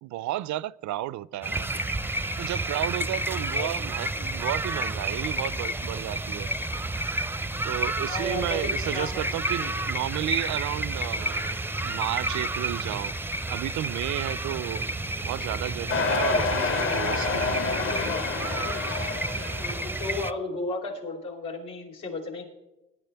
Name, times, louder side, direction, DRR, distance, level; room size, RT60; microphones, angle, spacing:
voice 1, 0.0-1.8 2.4-6.5 7.6-11.5 11.8-13.1 13.5-18.2, right 14 dB, 70° right, 0.4 m, -33 dB
sound 1, 1.4-20.3, right 2 dB, 5° right, 0.5 m, -30 dB
voice 2, 8.0-9.8 19.6-22.4, left 2 dB, 85° left, 3.7 m, -34 dB
sound 2, 15.9-20.0, left 4 dB, 45° left, 0.9 m, -28 dB
20.5 x 10.5 x 3.4 m
cardioid pair, 90°, 30 cm